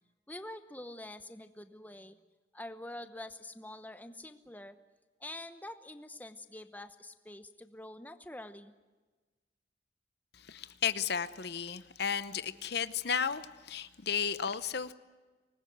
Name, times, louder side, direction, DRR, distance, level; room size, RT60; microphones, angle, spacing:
voice 1, 0.3-2.2 2.5-4.8 5.2-8.7, left 1 dB, 10° left, 9 dB, 0.9 m, -46 dB
voice 2, 10.3-14.9, left 7 dB, 55° left, 13 dB, 0.8 m, -34 dB
24.5 x 20.0 x 9.3 m, 1.3 s
head